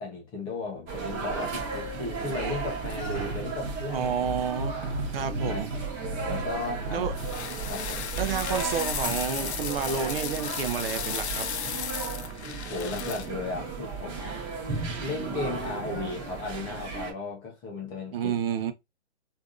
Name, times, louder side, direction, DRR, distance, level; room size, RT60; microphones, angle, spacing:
voice 1, 0.0-4.3 5.4-5.8 6.3-7.1 7.6-8.1 12.3-14.4 15.0-18.3, left 3 dB, 15° left, 0.5 m, -35 dB
sound 1, 0.9-17.1, right 4 dB, 30° right, 1.1 m, -35 dB
sound 2, 1.4-2.1 2.5-8.5, right 1 dB, 85° right, 0.8 m, -37 dB
voice 2, 3.9-4.8 5.1-5.7 6.9-7.1 8.2-11.5 18.1-18.7, right 7 dB, 55° right, 0.6 m, -30 dB
sound 3, 7.2-13.3, left 8 dB, 70° left, 0.6 m, -35 dB
3.3 x 2.6 x 2.4 m
hypercardioid pair, 135°, 35 cm